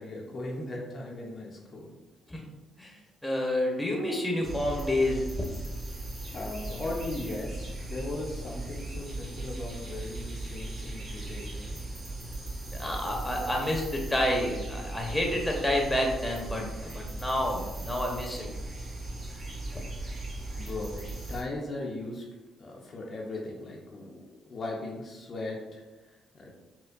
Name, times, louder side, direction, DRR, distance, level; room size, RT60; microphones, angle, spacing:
voice 1, 0.0-1.9 6.3-11.8 20.6-21.0 21.3-22.2 22.6-26.6, left 2 dB, 50° left, -2 dB, 0.6 m, -38 dB
voice 2, 3.2-5.2 12.8-18.5, left 1 dB, 10° left, 0 dB, 0.9 m, -29 dB
sound 1, 4.4-21.4, right 2 dB, 40° right, 1.1 m, -38 dB
4.3 x 2.2 x 2.5 m, 1.1 s
supercardioid pair, 60°, 0 cm